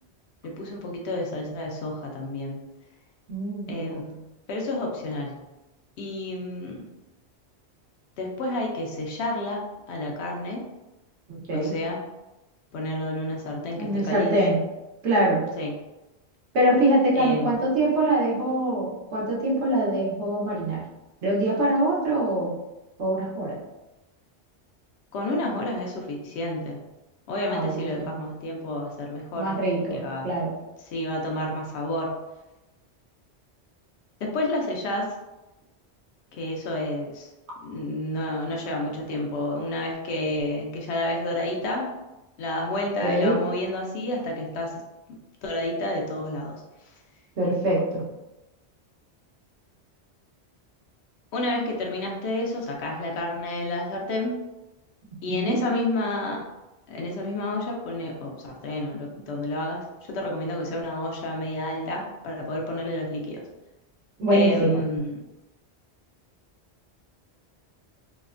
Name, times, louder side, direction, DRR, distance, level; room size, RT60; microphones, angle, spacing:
voice 1, 0.4-2.6 3.7-5.4 6.0-6.8 8.2-10.6 11.5-12.0 12.7-14.4 15.6-15.7 17.1-17.6 25.1-26.8 27.3-29.5 29.9-30.3 30.8-32.1 34.2-35.1 36.3-37.3 37.6-41.9 42.4-44.8 45.4-46.6 51.3-54.3 55.2-56.4 56.9-63.4 64.3-65.2, left 1 dB, 75° left, 0 dB, 0.8 m, -30 dB
voice 2, 3.3-4.0 11.3-11.7 13.8-14.6 15.0-15.4 16.5-20.8 21.2-22.5 23.0-23.6 27.5-28.2 29.3-30.5 43.0-43.3 47.4-48.0 55.3-55.6 64.2-64.8, right 1 dB, 90° right, -5 dB, 1.2 m, -24 dB
3.1 x 2.1 x 2.4 m, 1.0 s
omnidirectional pair, 1.1 m